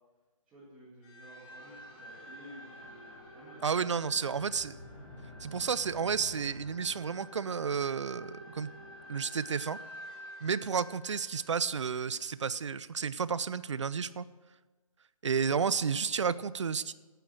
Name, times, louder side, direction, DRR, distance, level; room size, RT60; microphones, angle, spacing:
voice 1, 0.4-3.7 10.6-10.7, equal, 10° right, -10 dB, 2.0 m, -53 dB
sound 1, 1.0-12.2, equal, 10° left, 1.2 m, -49 dB
voice 2, 3.6-4.8 5.4-8.7 9.1-9.8 10.4-14.3 15.2-16.9, right 6 dB, 55° right, 17 dB, 0.5 m, -31 dB
9.9 x 9.1 x 7.7 m, 1.3 s
hypercardioid pair, 170°, 18 cm